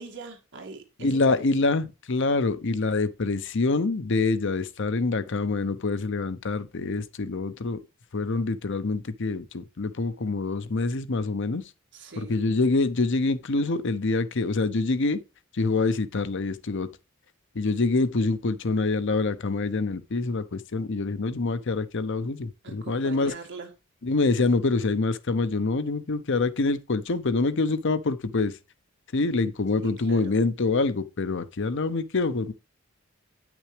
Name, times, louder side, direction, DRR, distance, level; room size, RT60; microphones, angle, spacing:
voice 1, 0.0-1.6 11.9-12.4 22.6-23.7 29.8-30.4, right 3 dB, 60° right, 2.2 m, -42 dB
voice 2, 1.0-7.8 8.1-11.6 12.2-15.2 15.5-16.9 17.5-23.3 24.0-28.5 29.1-32.5, left 3 dB, 60° left, 0.7 m, -26 dB
9.4 x 6.1 x 3.3 m
head